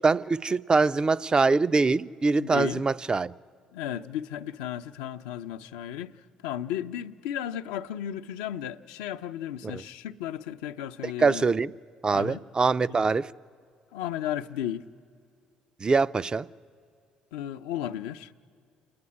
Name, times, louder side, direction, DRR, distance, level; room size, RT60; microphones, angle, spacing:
voice 1, 0.0-3.3 9.6-9.8 11.0-11.7 12.0-13.3 15.8-16.5, right 4 dB, 30° right, 0.5 m, -24 dB
voice 2, 2.4-2.8 3.7-6.1 6.4-11.5 12.1-12.4 13.9-14.9 17.3-18.3, left 11 dB, 85° left, 0.5 m, -34 dB
28.0 x 9.5 x 9.8 m
hypercardioid pair, 60°, 3 cm